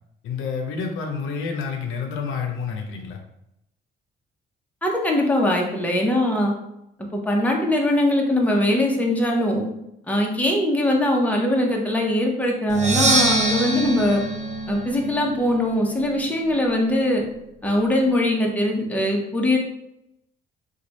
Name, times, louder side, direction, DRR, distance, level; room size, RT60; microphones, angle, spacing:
voice 1, 0.2-3.2, left 5 dB, 85° left, 3 dB, 0.6 m, -29 dB
voice 2, 4.8-6.5 7.1-9.6 10.1-14.2 14.7-17.2 17.6-19.6, left 1 dB, 5° left, 0 dB, 0.8 m, -21 dB
Percussion, 12.7-16.5, right 2 dB, 35° right, 0.7 m, -24 dB
3.1 x 2.3 x 4.0 m, 0.82 s
cardioid pair, 90°, 20 cm